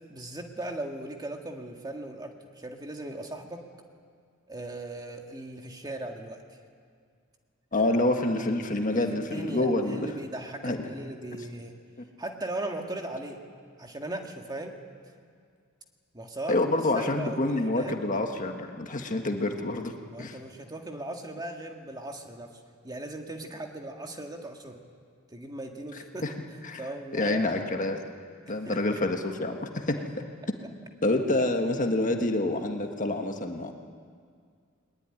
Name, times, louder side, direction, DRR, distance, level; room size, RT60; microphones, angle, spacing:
voice 1, 0.1-3.6 4.5-6.4 7.7-7.9 8.9-11.7 12.2-13.4 13.8-14.8 16.1-16.6 17.0-18.0 20.1-22.5 22.8-24.8 25.3-26.3 26.8-27.5 28.5-29.0, right 1 dB, 20° right, 3 dB, 1.9 m, -38 dB
voice 2, 7.7-10.1 10.6-10.8 16.5-19.9 20.2-20.4 26.2-26.3 26.6-26.8 27.1-28.0 28.5-30.0 31.0-33.7, left 2 dB, 40° left, 4 dB, 1.6 m, -27 dB
21.0 x 20.0 x 9.9 m, 2.1 s
head